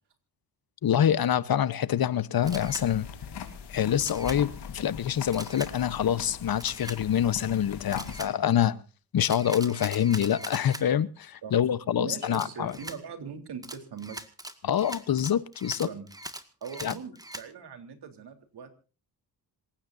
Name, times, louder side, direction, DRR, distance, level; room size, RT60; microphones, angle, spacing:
voice 1, 0.8-3.1 3.7-8.8 9.1-12.7 14.6-15.9 16.8-16.9, left 9 dB, 60° left, 1.0 m, -26 dB
sound 1, 2.4-8.2, left 7 dB, 75° left, 3.6 m, -41 dB
Camera, 2.5-2.9 4.0-4.4 5.3-5.7 6.6-7.0 7.9-8.3 9.2-10.8 12.3-13.0 13.6-17.5, right 1 dB, 10° right, 1.9 m, -41 dB
voice 2, 11.9-14.2 15.8-16.1 16.6-18.7, right 6 dB, 70° right, 3.7 m, -41 dB
27.0 x 16.0 x 2.7 m
cardioid pair, 95°, 41 cm